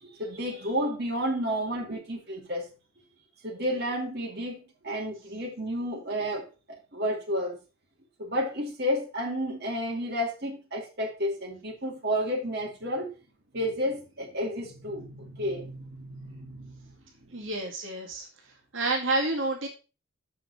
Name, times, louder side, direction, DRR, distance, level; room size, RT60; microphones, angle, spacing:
voice 1, 0.0-2.7 3.4-6.5 6.9-7.6 8.2-13.1 13.5-16.9, equal, 50° right, 2.1 m, -31 dB
voice 2, 17.3-18.3 18.7-19.7, right 2 dB, 65° right, 2.0 m, -29 dB
7.1 x 5.8 x 5.2 m
head